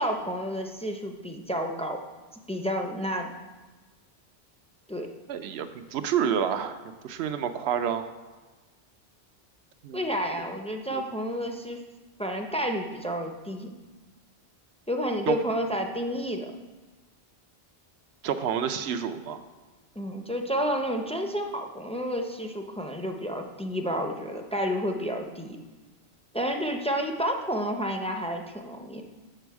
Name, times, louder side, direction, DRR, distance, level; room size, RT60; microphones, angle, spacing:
voice 1, 0.0-2.0 2.3-3.3 4.9-5.1 9.9-11.8 12.2-13.7 14.9-16.5 20.0-25.6 26.3-29.0, equal, 10° left, 3 dB, 0.3 m, -30 dB
voice 2, 5.3-6.8 7.0-8.1 9.8-10.0 10.9-11.0 15.3-15.4 18.2-19.4, right 8 dB, 85° right, 10 dB, 0.8 m, -28 dB
7.9 x 6.1 x 4.6 m, 1.2 s
omnidirectional pair, 1.1 m